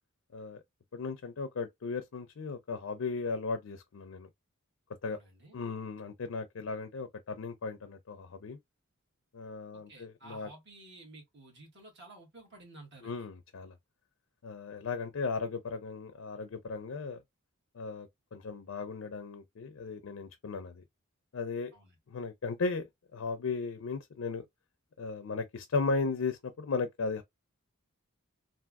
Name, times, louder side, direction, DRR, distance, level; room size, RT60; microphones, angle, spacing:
voice 1, 0.3-0.6 0.9-4.3 5.0-5.2 5.5-8.6 9.3-10.5 13.0-13.7 14.4-17.2 17.7-20.8 21.3-21.7 22.1-24.4 25.0-27.2, left 4 dB, 65° left, 0.4 m, -36 dB
voice 2, 5.1-5.6 9.7-13.3 21.7-22.0, right 2 dB, 55° right, 1.8 m, -53 dB
3.5 x 2.5 x 2.3 m
head